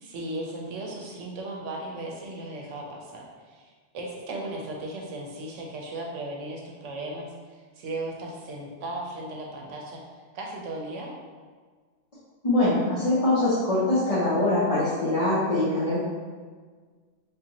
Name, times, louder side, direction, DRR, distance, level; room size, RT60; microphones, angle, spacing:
voice 1, 0.0-7.3 7.8-10.0 10.3-11.1, right 2 dB, 80° right, -1 dB, 1.0 m, -36 dB
voice 2, 12.4-16.0, left 2 dB, 40° left, -10 dB, 0.6 m, -23 dB
3.6 x 2.7 x 2.8 m, 1.5 s
omnidirectional pair, 1.2 m